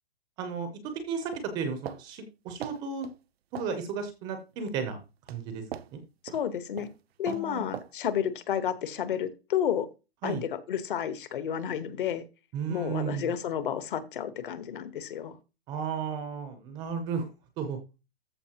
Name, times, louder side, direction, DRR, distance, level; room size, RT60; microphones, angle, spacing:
voice 1, 0.4-0.7 1.1-3.1 3.5-5.0 5.3-5.6 5.9-6.0 7.3-7.7 10.2-10.4 12.5-13.3 15.7-17.3 17.6-17.8, right 6 dB, 15° right, 8 dB, 0.6 m, -33 dB
sound 1, 1.3-2.0 2.6-3.2 3.6-3.7 4.5-4.8 5.3-5.4 5.7-5.9 6.3-6.5 6.8-7.0 7.3-7.5 7.7-7.9, right 10 dB, 70° right, 0.7 m, -40 dB
voice 2, 6.3-6.9 7.2-9.9 10.2-12.2 12.7-15.4, left 9 dB, 55° left, 12 dB, 1.2 m, -31 dB
14.0 x 5.2 x 2.9 m, 0.28 s
hypercardioid pair, 160°, 32 cm